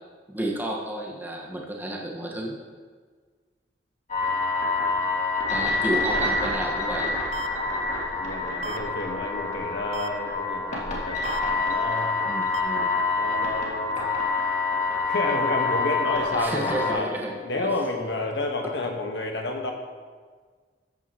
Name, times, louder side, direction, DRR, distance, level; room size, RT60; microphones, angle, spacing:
voice 1, 0.3-2.6 5.5-7.2 12.2-13.0 16.3-17.7, right 1 dB, 10° right, -3 dB, 1.5 m, -31 dB
sound 1, 4.1-16.9, left 3 dB, 40° left, 2.1 m, -27 dB
voice 2, 5.6-6.3 8.1-11.2 11.5-12.1 13.2-13.9 15.1-17.1 17.4-19.7, left 2 dB, 70° left, 2 dB, 1.4 m, -30 dB
sound 2, 7.3-7.5 8.6-8.8 9.9-10.1 11.2-11.4 12.5-12.6, right 4 dB, 40° right, 0.5 m, -33 dB
14.0 x 8.8 x 3.1 m, 1.6 s
head